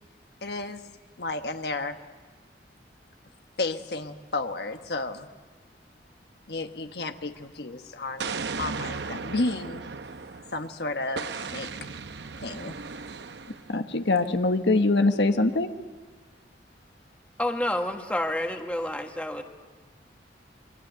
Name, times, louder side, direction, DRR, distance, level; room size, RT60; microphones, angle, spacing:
voice 1, 0.4-0.8 1.2-2.0 3.6-5.3 6.5-9.8 10.5-11.3 11.5-11.7 12.4-12.7 13.7-13.8, left 2 dB, 65° left, 7 dB, 1.3 m, -32 dB
Explosion, 8.2-10.6 11.2-13.7, right 4 dB, 75° right, 0.8 m, -36 dB
voice 2, 13.7-15.7, left 2 dB, 85° left, 7 dB, 1.3 m, -23 dB
voice 3, 17.4-19.4, left 1 dB, 10° left, 4 dB, 1.6 m, -29 dB
28.5 x 23.0 x 8.1 m, 1.4 s
head